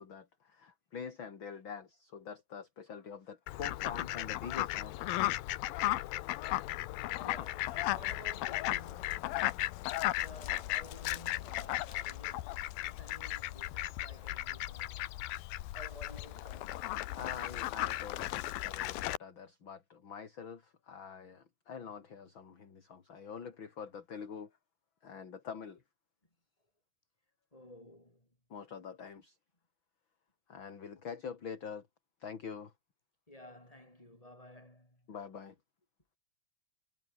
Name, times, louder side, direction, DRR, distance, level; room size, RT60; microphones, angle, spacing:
voice 1, 0.0-5.1 7.7-7.8 10.5-10.6 17.1-24.5 25.0-25.8 28.5-29.4 30.5-31.9 32.2-32.7 35.1-35.6, left 6 dB, 35° left, 2.8 m, -45 dB
Fowl, 3.5-19.2, left 16 dB, 85° left, 2.7 m, -36 dB
voice 2, 7.2-9.3 10.0-15.2 15.7-16.9 23.1-23.4 27.5-28.3 33.3-35.0, left 1 dB, 10° left, 7.2 m, -53 dB
omnidirectional pair, 4.2 m